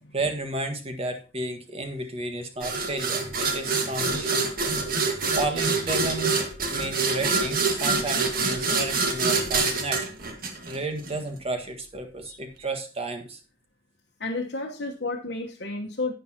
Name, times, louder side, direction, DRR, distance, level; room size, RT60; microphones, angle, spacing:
voice 1, 0.1-4.5 5.4-10.1 10.7-13.4, right 2 dB, 35° right, 6 dB, 1.7 m, -32 dB
sound 1, 2.6-11.1, right 4 dB, 55° right, 1.7 m, -26 dB
voice 2, 14.2-16.1, left 2 dB, 65° left, -1 dB, 1.2 m, -32 dB
11.0 x 9.4 x 2.9 m, 0.32 s
head